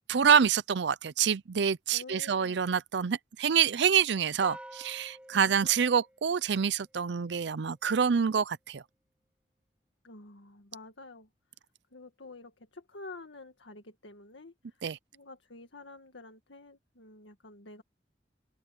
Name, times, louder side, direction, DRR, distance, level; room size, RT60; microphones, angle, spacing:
voice 1, 0.1-8.8 14.8-15.0, right 7 dB, 70° right, 0.5 m, -26 dB
voice 2, 1.9-2.6 10.0-11.3 11.9-14.8 15.1-17.8, left 3 dB, 85° left, 1.9 m, -49 dB
sound 1, 4.4-6.9, right 1 dB, 5° right, 7.4 m, -48 dB
head